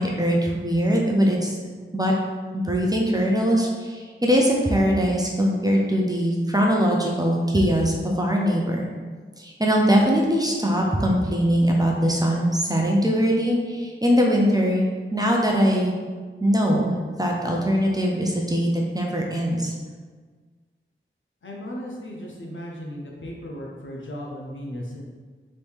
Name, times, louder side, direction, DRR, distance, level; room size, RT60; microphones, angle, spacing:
voice 1, 0.0-1.6 1.9-2.1 2.5-8.9 9.4-15.9 16.4-19.7, equal, 20° right, -1 dB, 0.5 m, -21 dB
voice 2, 21.4-25.0, equal, 65° left, -2 dB, 0.7 m, -36 dB
3.1 x 2.7 x 3.4 m, 1.5 s
wide cardioid pair, 55°, 21 cm